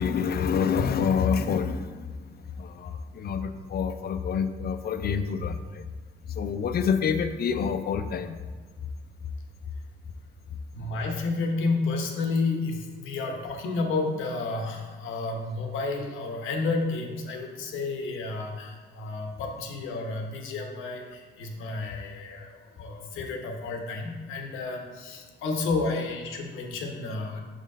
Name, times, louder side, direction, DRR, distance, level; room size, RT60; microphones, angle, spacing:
voice 1, 0.0-5.9 6.3-8.4, left 6 dB, 50° left, 9 dB, 0.5 m, -27 dB
voice 2, 10.7-27.4, left 3 dB, 90° left, 3 dB, 1.0 m, -31 dB
6.2 x 4.0 x 5.3 m, 1.5 s
cardioid pair, 90°, 20 cm